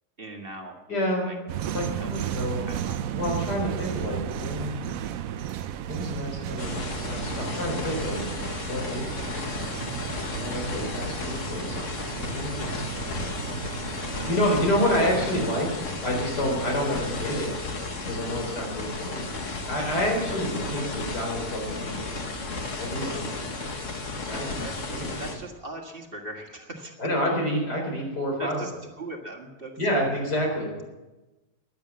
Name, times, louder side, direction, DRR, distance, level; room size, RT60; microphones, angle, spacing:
voice 1, 0.2-0.8 1.2-1.4 2.0-3.0 10.9-11.4 12.7-13.3 13.9-14.5 16.7-16.8 18.6-18.8 24.6-26.9 28.4-28.7 29.0-29.7, right 2 dB, 35° right, 2 dB, 1.9 m, -41 dB
voice 2, 0.9-1.3 1.7-2.7 3.1-4.8 5.9-8.2 8.7-9.1 10.3-11.8 12.2-12.8 14.3-15.7 16.0-17.5 18.0-19.2 19.7-22.4 22.8-23.5 24.2-24.6 24.9-25.1 27.0-28.6 29.8-30.8, equal, 85° left, 0 dB, 4.8 m, -28 dB
sound 1, 1.5-15.5, right 10 dB, 65° right, 1.0 m, -34 dB
sound 2, 6.6-25.4, left 3 dB, 50° left, 1.9 m, -33 dB
15.5 x 10.5 x 7.4 m, 1.1 s
omnidirectional pair, 1.7 m